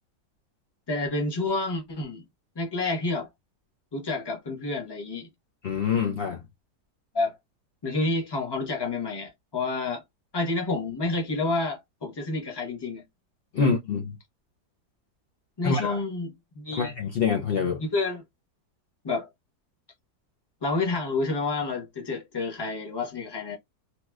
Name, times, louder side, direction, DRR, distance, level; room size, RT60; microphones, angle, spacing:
voice 1, 0.9-2.2 2.5-3.3 3.9-5.3 7.1-7.4 7.8-10.0 10.3-13.0 13.6-13.7 15.6-16.9 17.8-18.2 19.0-19.3 20.6-23.6, left 3 dB, 20° left, 0.7 m, -29 dB
voice 2, 5.6-6.4 13.5-14.1 15.6-15.9 16.8-17.8, left 5 dB, 75° left, 0.5 m, -25 dB
2.9 x 2.9 x 2.3 m
omnidirectional pair, 1.8 m